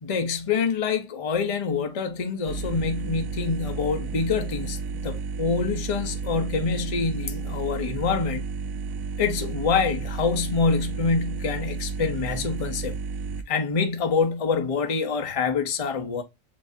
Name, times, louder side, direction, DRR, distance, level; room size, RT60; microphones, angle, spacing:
voice 1, 0.0-8.4 9.2-12.9 13.5-16.2, left 5 dB, 35° left, 0.6 m, -26 dB
sound 1, 2.5-13.4, right 5 dB, 90° right, 1.0 m, -32 dB
7.4 x 2.6 x 2.6 m
omnidirectional pair, 1.4 m